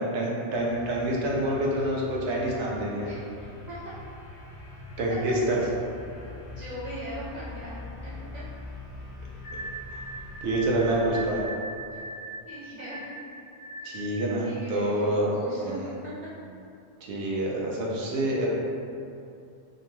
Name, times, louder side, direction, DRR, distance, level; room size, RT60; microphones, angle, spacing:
voice 1, 0.0-3.1 5.0-5.6 10.4-11.4 13.8-15.4 15.6-15.9 17.0-18.5, right 1 dB, 80° right, -3 dB, 0.9 m, -27 dB
sound 1, 0.5-11.5, left 2 dB, 75° left, 1.0 m, -43 dB
voice 2, 6.6-8.4 11.9-12.0 12.4-13.1 14.4-16.1, right 1 dB, 55° right, -10 dB, 0.5 m, -39 dB
sound 2, 9.4-14.3, right 2 dB, 45° left, 0.5 m, -39 dB
2.7 x 2.2 x 3.0 m, 2.5 s
omnidirectional pair, 1.2 m